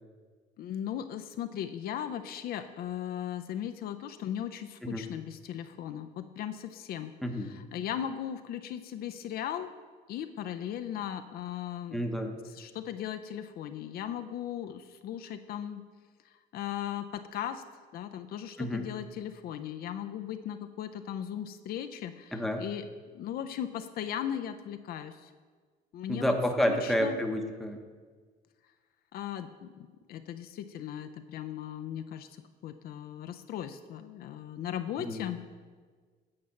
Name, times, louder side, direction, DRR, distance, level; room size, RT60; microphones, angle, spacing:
voice 1, 0.6-7.1 7.5-9.7 10.1-12.0 12.5-15.8 16.5-17.6 17.9-22.8 23.1-25.3 25.9-26.4 26.7-27.2 29.1-32.3 32.6-35.4, left 10 dB, 65° left, 8 dB, 0.5 m, -37 dB
voice 2, 7.2-7.5 11.9-12.3 18.6-18.9 22.3-22.6 26.1-27.8 35.0-35.2, equal, ahead, 3 dB, 0.8 m, -30 dB
8.6 x 4.2 x 7.0 m, 1.5 s
cardioid pair, 110°, 17 cm